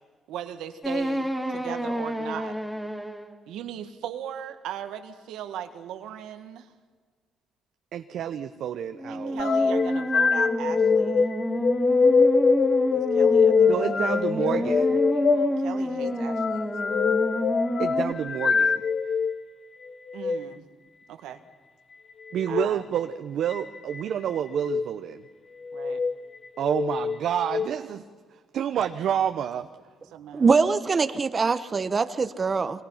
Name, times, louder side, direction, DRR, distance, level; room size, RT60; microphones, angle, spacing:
voice 1, 0.3-2.6 3.5-6.7 9.1-11.3 12.9-17.1 20.1-20.7 21.1-21.4 22.5-22.8 25.7-26.0 30.1-30.5, right 10 dB, 90° right, 1.7 m, -39 dB
sound 1, 0.8-3.3 9.0-18.1, equal, 5° left, 3.1 m, -29 dB
voice 2, 7.9-9.4 13.7-14.9 17.8-18.8 22.3-25.2 26.6-28.0 28.5-29.7, right 9 dB, 70° right, 1.0 m, -29 dB
sound 2, 9.4-19.3 20.1-20.4 22.4-22.7 23.5-24.0 24.6-24.9 25.6-26.1 26.6-27.7, left 5 dB, 50° left, 1.1 m, -23 dB
voice 3, 30.3-32.8, right 4 dB, 35° right, 1.1 m, -23 dB
29.0 x 24.5 x 5.8 m
cardioid pair, 90°, 0 cm